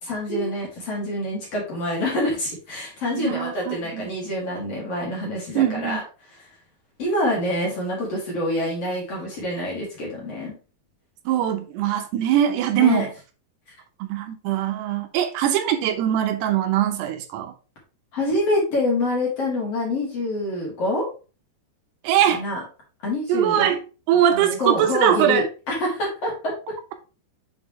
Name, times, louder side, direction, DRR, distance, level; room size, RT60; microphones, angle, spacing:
voice 1, 0.0-6.0 7.0-10.6 12.7-13.1 18.1-21.1 22.3-22.6 23.0-23.7 24.3-26.5, left 1 dB, 45° left, 2.9 m, -26 dB
voice 2, 3.1-4.1 5.6-6.0 11.3-13.1 14.0-17.5 22.0-22.4 23.3-23.8 24.1-25.5, right 10 dB, 85° right, 3.0 m, -22 dB
7.2 x 5.0 x 3.1 m
omnidirectional pair, 4.7 m